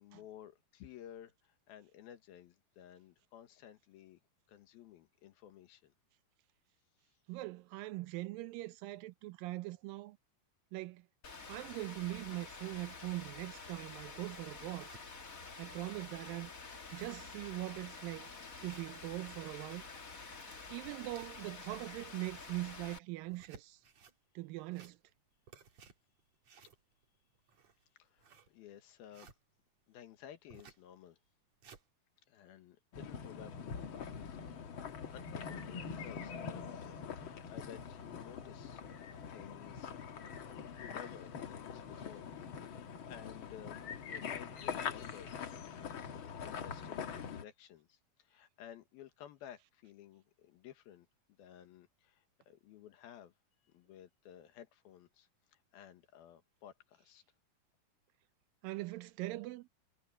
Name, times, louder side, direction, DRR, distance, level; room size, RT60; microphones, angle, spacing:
voice 1, 0.0-4.2 4.5-5.9 28.0-29.3 29.9-31.2 32.3-34.3 35.1-39.9 40.5-42.3 42.6-43.8 44.1-47.1 47.3-51.1 51.4-53.3 53.7-57.2, left 10 dB, 85° left, 3.3 m, -55 dB
voice 2, 7.3-10.2 10.7-11.1 11.5-14.9 15.6-16.5 16.9-18.3 18.6-19.8 20.7-23.8 24.4-25.0 58.6-59.7, right 19 dB, 80° right, 2.2 m, -42 dB
Rain, 11.2-23.0, left 4 dB, 30° left, 1.8 m, -49 dB
sound 1, 14.6-15.0 15.6-15.7 16.0-16.1 16.4-16.5 16.7-17.3 17.8-17.9 18.5-19.3 20.1-21.6 22.0-22.7 23.2-24.2 24.6-25.2 25.5-29.4 30.5-30.9 31.3-31.8, right 5 dB, 50° right, 3.6 m, -59 dB
sound 2, 32.9-47.4, left 6 dB, 60° left, 1.4 m, -44 dB
omnidirectional pair, 4.2 m